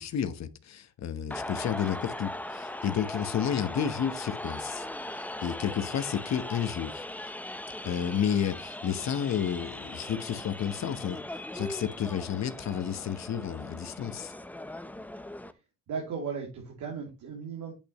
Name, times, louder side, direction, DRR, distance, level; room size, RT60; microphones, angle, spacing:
voice 1, 0.0-4.9 5.1-7.0 7.8-11.2 11.5-14.3, left 9 dB, 60° left, 1.1 m, -31 dB
sound 1, 1.3-15.5, left 1 dB, 5° left, 0.8 m, -39 dB
voice 2, 3.6-4.0 15.9-17.7, right 6 dB, 80° right, 3.1 m, -37 dB
8.6 x 8.6 x 3.1 m
cardioid pair, 90°, 30 cm